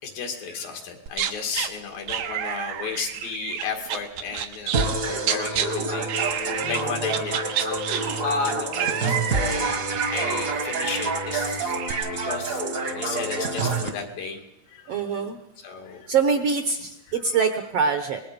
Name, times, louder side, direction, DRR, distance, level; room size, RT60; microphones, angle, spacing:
voice 1, 0.0-4.8 5.1-9.8 10.1-14.4 14.7-14.9 15.6-16.1, left 5 dB, 80° left, 2 dB, 4.1 m, -33 dB
sound 1, 1.1-1.7 2.1-5.0 5.2-5.7 6.1-6.8 7.1-11.9, right 10 dB, 90° right, 2.8 m, -30 dB
sound 2, 4.7-13.9, right 3 dB, 45° right, 1.1 m, -27 dB
voice 2, 6.6-7.1 14.9-15.4 16.1-18.2, right 5 dB, 65° right, 7 dB, 1.6 m, -24 dB
24.5 x 20.5 x 5.2 m, 0.84 s
omnidirectional pair, 3.9 m